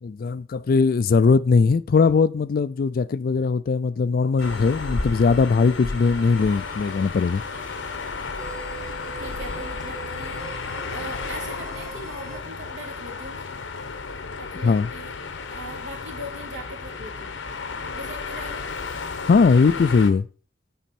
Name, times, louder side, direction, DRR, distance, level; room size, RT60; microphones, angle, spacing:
voice 1, 0.0-7.4 14.6-14.9 19.3-20.3, left 4 dB, 50° left, 0.4 m, -20 dB
sound 1, 4.4-20.1, left 4 dB, 80° left, 0.8 m, -33 dB
sound 2, 4.4-12.4, right 3 dB, 50° right, 1.6 m, -43 dB
voice 2, 9.2-10.4 10.9-13.5 14.4-15.1 15.5-17.3 17.9-18.6, equal, 75° right, 2.3 m, -39 dB
9.1 x 4.3 x 4.2 m
head